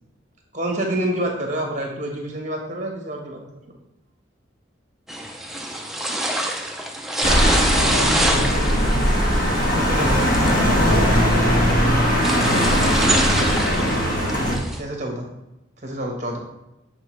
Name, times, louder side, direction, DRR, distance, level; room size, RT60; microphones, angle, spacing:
voice 1, 0.5-3.4 9.7-10.3 14.7-15.3 15.8-16.4, right 1 dB, 40° right, 1 dB, 1.1 m, -27 dB
sound 1, 5.1-14.8, right 1 dB, ahead, 0.4 m, -26 dB
sound 2, 7.2-14.6, equal, 45° left, 1.3 m, -19 dB
voice 2, 7.8-9.0 13.3-14.1, left 1 dB, 90° left, 0 dB, 1.2 m, -32 dB
7.4 x 4.1 x 3.1 m, 0.92 s
head